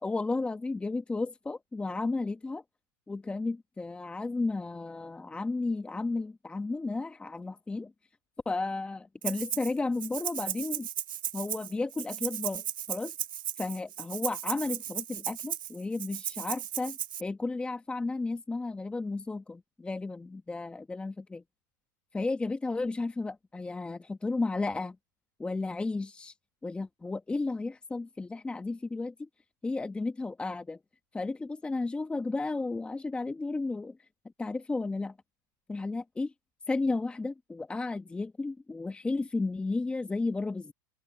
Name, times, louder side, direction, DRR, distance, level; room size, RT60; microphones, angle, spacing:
voice 1, 0.0-2.6 3.1-7.9 8.4-10.9 11.3-12.6 12.9-13.1 13.6-21.4 22.1-25.0 25.4-26.3 26.6-29.3 29.6-30.8 31.1-34.0 34.4-35.2 35.7-36.3 36.7-40.7, left 3 dB, 10° left, 1.2 m, -33 dB
Rattle (instrument), 9.2-9.7 10.0-17.2, right 10 dB, 90° right, 2.5 m, -36 dB
open air
hypercardioid pair, 115°, 11 cm